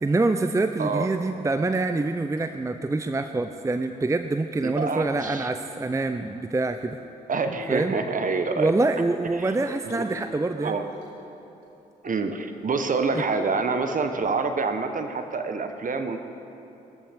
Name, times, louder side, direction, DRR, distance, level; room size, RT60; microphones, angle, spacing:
voice 1, 0.0-7.0 7.7-7.9 8.6-10.8 13.1-13.2, right 2 dB, 15° right, 9 dB, 0.6 m, -25 dB
sound 1, 2.4-2.5 3.0-3.2 3.6-3.7 4.0-4.4 4.8-5.5 6.6-7.2 7.6-7.9 8.4-8.7 9.7-10.3 10.6-11.3 11.6-11.7 12.1-12.3 12.7-12.8 13.3-13.6 13.9-14.3, left 4 dB, 80° left, 1.8 m, -44 dB
voice 2, 4.6-5.5 7.3-8.7 9.3-10.1 10.6-10.9 12.0-16.2, right 4 dB, 40° right, 7 dB, 1.3 m, -27 dB
20.0 x 14.0 x 3.7 m, 2.9 s
hypercardioid pair, 40°, 21 cm